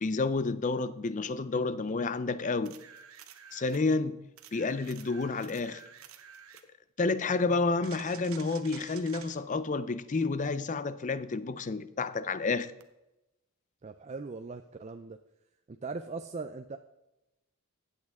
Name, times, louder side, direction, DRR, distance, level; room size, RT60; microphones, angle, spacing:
voice 1, 0.0-2.8 3.5-4.2 4.5-5.8 7.0-12.7, left 3 dB, 35° left, 0.4 m, -30 dB
sound 1, 2.7-3.9 4.4-6.7 7.8-9.4 12.8-12.9, right 8 dB, 65° right, 0.8 m, -50 dB
voice 2, 13.8-15.2 15.7-16.8, right 4 dB, 30° right, 0.4 m, -40 dB
14.5 x 8.5 x 3.6 m
head